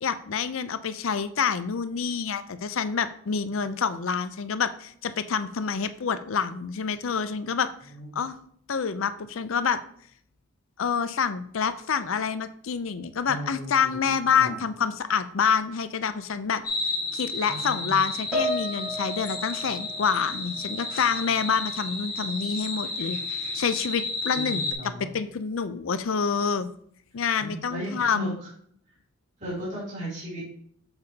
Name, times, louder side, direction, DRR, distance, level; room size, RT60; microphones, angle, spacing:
voice 1, 0.0-7.7 8.1-8.4 8.7-9.8 10.8-16.6 17.1-26.7 27.1-28.4, left 6 dB, 70° left, 12 dB, 0.5 m, -27 dB
voice 2, 13.2-14.6 17.5-18.0 24.3-25.1 27.4-28.3 29.4-30.4, equal, 35° right, -8 dB, 3.0 m, -36 dB
sound 1, 16.6-24.7, left 3 dB, 45° left, 1.6 m, -32 dB
Piano, 18.3-21.0 21.2-21.6 22.3-22.5, left 1 dB, 5° right, 3.0 m, -33 dB
7.7 x 7.0 x 2.8 m, 0.64 s
head